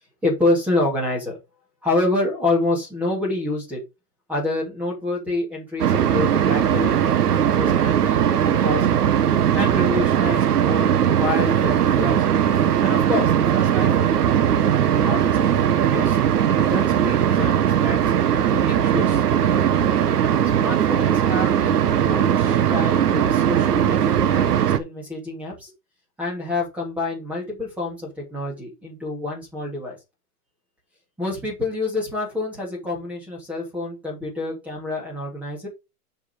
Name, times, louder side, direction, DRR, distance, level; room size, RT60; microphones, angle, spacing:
voice 1, 0.2-1.4 1.8-3.8 4.3-7.0 7.4-9.0 9.5-12.3 12.8-14.1 14.6-16.2 16.6-18.1 18.5-19.6 20.6-25.7 26.2-30.0 31.2-35.7, left 2 dB, 5° right, -1 dB, 2.8 m, -28 dB
sound 1, 5.8-24.8, right 9 dB, 80° right, 1.2 m, -19 dB
7.0 x 5.5 x 5.2 m, 0.25 s
hypercardioid pair, 170°, 46 cm